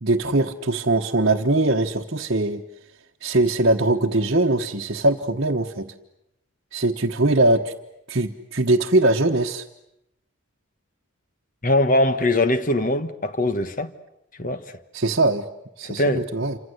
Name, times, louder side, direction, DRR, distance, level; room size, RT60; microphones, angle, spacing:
voice 1, 0.0-2.6 3.2-5.9 6.7-7.7 8.1-9.6 14.9-15.5 15.8-16.6, right 2 dB, 50° right, 1.2 m, -21 dB
voice 2, 11.6-13.9 14.4-14.7 15.8-16.3, left 1 dB, 40° left, 1.3 m, -21 dB
28.0 x 26.0 x 8.1 m
head